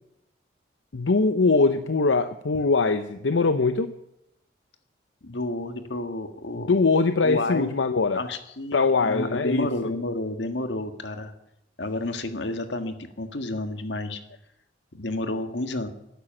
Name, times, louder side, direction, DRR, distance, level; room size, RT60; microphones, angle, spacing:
voice 1, 0.9-3.9 6.7-8.2 8.7-9.7, left 3 dB, 90° left, 10 dB, 0.7 m, -22 dB
voice 2, 5.2-6.8 7.2-7.7 8.1-11.3 11.8-14.2 14.9-15.9, left 2 dB, 70° left, 7 dB, 1.7 m, -30 dB
12.5 x 10.5 x 9.0 m, 0.84 s
head